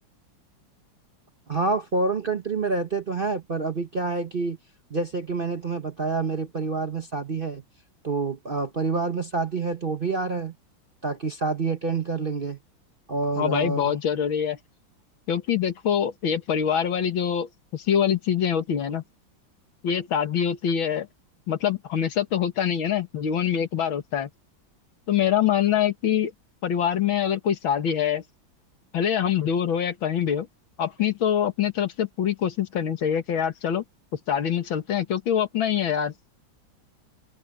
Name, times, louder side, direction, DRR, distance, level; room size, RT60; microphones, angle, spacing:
voice 1, 1.5-4.6 4.9-7.6 8.0-10.5 11.0-12.6 13.1-13.9, right 3 dB, 40° right, 0.9 m, -27 dB
voice 2, 13.4-14.6 15.3-19.0 19.8-21.1 21.5-24.3 25.1-26.3 26.6-28.2 28.9-30.5 30.8-33.8 34.3-36.1, left 9 dB, 80° left, 2.4 m, -24 dB
open air
omnidirectional pair, 2.1 m